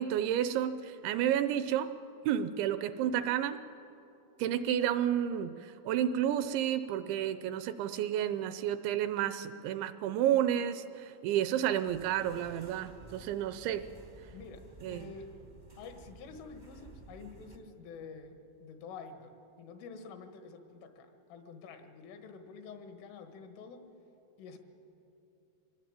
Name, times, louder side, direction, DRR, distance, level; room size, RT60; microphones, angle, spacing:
voice 1, 0.0-1.9 2.3-3.6 4.4-13.9 14.8-15.0, right 10 dB, 80° right, 12 dB, 2.8 m, -31 dB
sound 1, 11.8-17.6, right 2 dB, 55° right, 0.5 m, -53 dB
voice 2, 14.3-15.3 15.8-23.9 24.4-24.6, left 5 dB, 85° left, 6 dB, 4.2 m, -48 dB
24.5 x 19.5 x 8.9 m, 2.8 s
omnidirectional pair, 5.6 m